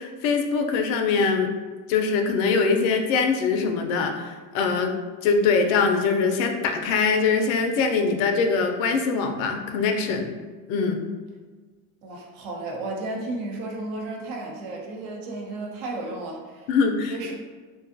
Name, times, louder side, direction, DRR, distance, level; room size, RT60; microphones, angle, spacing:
voice 1, 0.0-1.5 1.9-4.9 5.2-10.3 10.7-11.0 16.7-17.2, left 5 dB, 85° left, 5 dB, 0.5 m, -23 dB
voice 2, 12.0-16.7 17.1-17.3, right 2 dB, 75° right, 0 dB, 0.7 m, -33 dB
2.5 x 2.3 x 2.5 m, 1.4 s
supercardioid pair, 120°, 39 cm